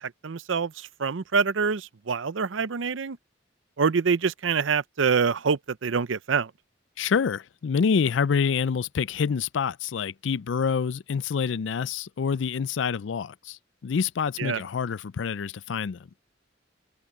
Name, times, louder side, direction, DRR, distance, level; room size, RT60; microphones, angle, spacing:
voice 1, 0.0-3.2 3.8-6.5 14.4-14.6, right 5 dB, 85° right, 0.6 m, -26 dB
voice 2, 7.0-16.1, left 6 dB, 75° left, 0.4 m, -27 dB
head